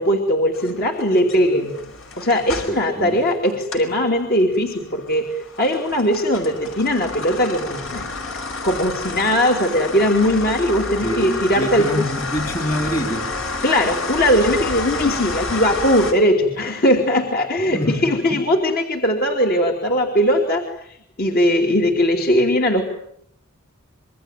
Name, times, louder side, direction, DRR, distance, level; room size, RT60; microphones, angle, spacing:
voice 1, 0.0-1.8 2.2-5.2 5.6-8.1 8.6-12.0 13.6-20.6 21.2-22.8, equal, 45° left, 2 dB, 2.8 m, -19 dB
sound 1, 0.5-3.9 4.3-16.1, left 3 dB, 65° left, 5.1 m, -30 dB
voice 2, 2.7-3.2 11.0-13.3 17.6-18.4, equal, 30° left, 6 dB, 2.8 m, -26 dB
26.5 x 23.5 x 9.1 m, 0.69 s
head